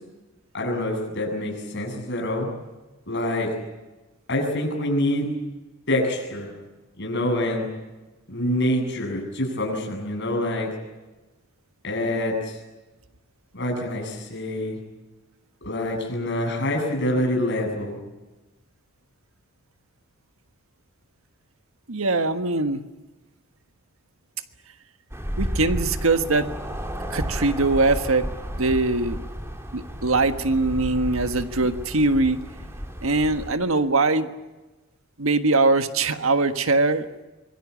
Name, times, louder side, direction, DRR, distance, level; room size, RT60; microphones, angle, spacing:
voice 1, 0.5-2.5 3.1-3.5 4.3-5.3 5.9-6.5 7.0-7.7 8.3-10.7 11.8-12.6 13.5-14.8 15.6-18.0, left 1 dB, 55° left, 1 dB, 7.8 m, -26 dB
voice 2, 21.9-22.8 25.4-26.5 27.1-28.3 28.6-29.2 29.7-32.4 33.0-34.3 35.2-37.1, right 3 dB, 85° right, 9 dB, 1.5 m, -22 dB
sound 1, 25.1-33.5, equal, 15° right, 2.7 m, -32 dB
25.0 x 22.0 x 8.5 m, 1.1 s
head